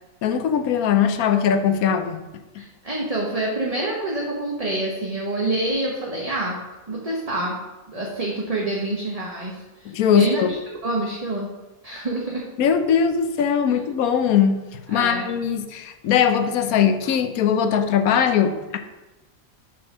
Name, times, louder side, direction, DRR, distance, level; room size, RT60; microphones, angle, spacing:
voice 1, 0.2-2.2 9.8-10.5 12.6-18.8, left 8 dB, 85° left, 8 dB, 1.2 m, -20 dB
voice 2, 2.6-6.6 6.9-7.6 7.9-10.6 10.8-11.5 11.8-12.4 14.9-15.3, right 2 dB, 30° right, -3 dB, 1.0 m, -27 dB
6.2 x 4.5 x 6.1 m, 1.1 s
omnidirectional pair, 1.5 m